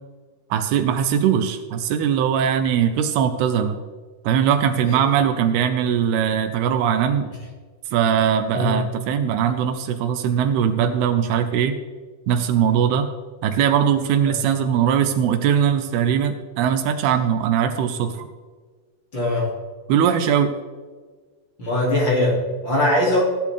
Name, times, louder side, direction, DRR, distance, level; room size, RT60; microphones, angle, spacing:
voice 1, 0.5-3.8 4.2-7.3 7.9-11.8 12.3-13.1 13.4-18.3 19.9-20.6, right 8 dB, 80° right, 8 dB, 2.6 m, -20 dB
voice 2, 19.1-19.5 21.6-23.2, left 1 dB, 35° left, -4 dB, 2.7 m, -20 dB
15.5 x 10.5 x 3.4 m, 1.4 s
omnidirectional pair, 4.7 m